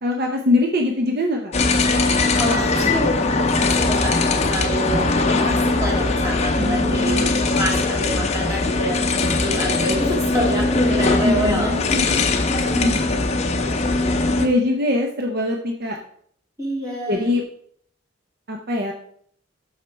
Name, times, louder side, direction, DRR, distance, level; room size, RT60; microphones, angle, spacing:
voice 1, 0.0-1.5 6.6-7.5 11.2-12.2 13.5-13.7 14.4-16.0 17.1-17.4 18.5-18.9, left 2 dB, 50° right, 2 dB, 0.7 m, -23 dB
sound 1, 1.5-14.5, left 3 dB, 35° left, 0.6 m, -20 dB
voice 2, 2.3-11.7 12.7-13.0 14.0-14.3 16.6-17.3, equal, 15° right, -3 dB, 2.3 m, -27 dB
6.5 x 6.2 x 4.6 m, 0.64 s
head